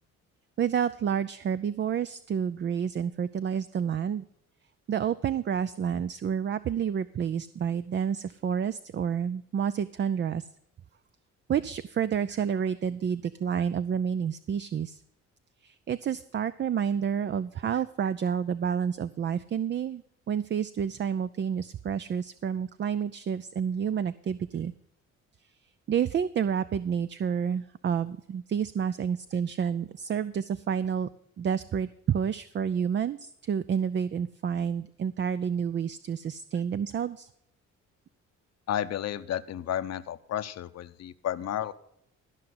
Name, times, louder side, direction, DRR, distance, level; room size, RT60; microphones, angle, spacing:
voice 1, 0.6-4.2 4.9-10.5 11.5-15.0 15.6-24.7 25.9-31.1 31.4-37.3, right 7 dB, 40° right, 14 dB, 0.4 m, -29 dB
voice 2, 38.7-41.7, left 10 dB, 60° left, 11 dB, 0.8 m, -32 dB
13.0 x 5.7 x 7.7 m, 0.74 s
cardioid pair, 90°, 30 cm